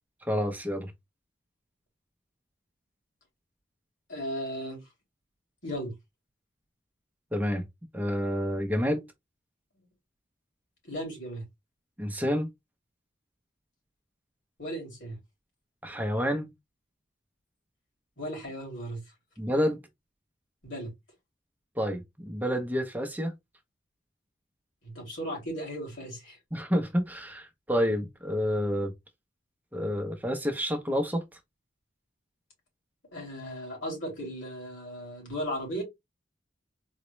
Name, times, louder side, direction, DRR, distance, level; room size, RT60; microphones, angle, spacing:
voice 1, 0.2-0.9 7.3-7.6 7.9-9.0 12.0-12.5 15.8-16.5 19.4-19.8 21.8-23.3 26.5-28.9 29.7-31.2, equal, 10° right, 0.6 m, -29 dB
voice 2, 4.1-4.8 5.6-5.9 10.8-11.4 14.6-15.2 18.2-19.0 20.6-20.9 24.8-26.4 33.1-35.8, equal, 90° left, 2.5 m, -36 dB
4.0 x 2.1 x 3.0 m
head